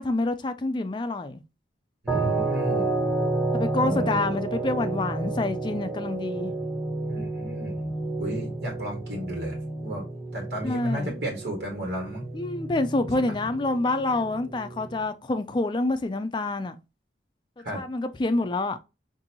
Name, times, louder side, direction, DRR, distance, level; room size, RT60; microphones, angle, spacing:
voice 1, 0.0-1.4 3.5-6.6 10.6-11.1 12.3-16.8 17.6-18.8, left 2 dB, 25° left, 0.4 m, -27 dB
voice 2, 2.0-2.9 3.8-4.2 7.1-7.9 8.2-9.6 9.8-10.0 10.3-12.3 17.6-17.8, equal, 70° right, 1.6 m, -33 dB
sound 1, 2.1-15.1, right 2 dB, ahead, 0.9 m, -31 dB
3.9 x 2.6 x 2.8 m
head